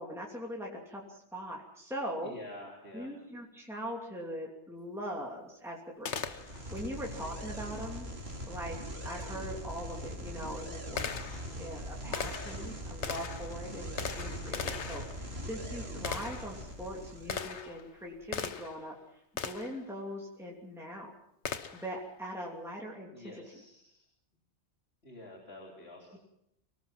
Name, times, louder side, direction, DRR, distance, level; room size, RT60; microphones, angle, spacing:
voice 1, 0.0-2.4 2.9-8.1 8.4-19.0 19.4-21.2 21.7-23.3, equal, ahead, -3 dB, 2.8 m, -41 dB
voice 2, 2.2-3.1 23.1-24.0 25.0-26.2, left 1 dB, 70° left, -1 dB, 3.7 m, -48 dB
Gunshot gunfire, 6.0-6.9 9.2-9.3 10.0-18.9 19.4-19.8 21.4-22.0, left 6 dB, 85° left, 1.4 m, -40 dB
sound 1, 6.1-17.6, equal, 65° right, 3.5 m, -42 dB
25.0 x 18.5 x 5.8 m, 0.78 s
omnidirectional pair, 1.1 m